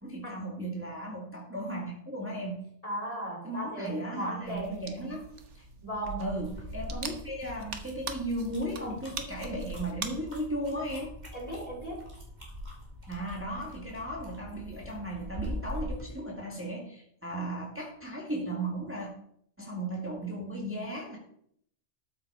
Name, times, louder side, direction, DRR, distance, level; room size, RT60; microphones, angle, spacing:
voice 1, 0.0-2.6 3.4-5.3 5.5-5.6 6.2-11.1 13.1-19.1 19.6-21.2, right 1 dB, 10° right, -2 dB, 1.9 m, -36 dB
voice 2, 2.8-4.8 5.8-6.3 11.3-12.0, right 1 dB, 30° left, -1 dB, 3.1 m, -36 dB
sound 1, 4.4-10.1, right 5 dB, 70° right, 1.5 m, -42 dB
sound 2, 6.4-16.1, equal, 35° right, 3.0 m, -42 dB
13.0 x 7.5 x 4.6 m, 0.68 s
omnidirectional pair, 1.3 m